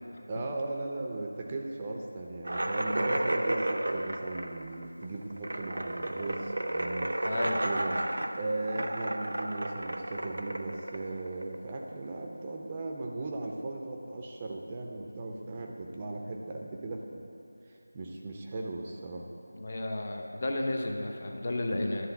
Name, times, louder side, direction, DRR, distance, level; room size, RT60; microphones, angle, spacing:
voice 1, 0.3-7.3 7.6-8.0 8.4-17.2 17.7-19.3, right 2 dB, 20° right, 0 dB, 0.5 m, -37 dB
sound 1, 2.4-11.8, right 1 dB, 70° right, 0.5 m, -32 dB
voice 2, 7.2-7.6 19.5-22.1, left 1 dB, 40° left, 2 dB, 0.7 m, -32 dB
11.0 x 3.7 x 6.9 m, 2.9 s
figure-of-eight pair, 170°, 0 cm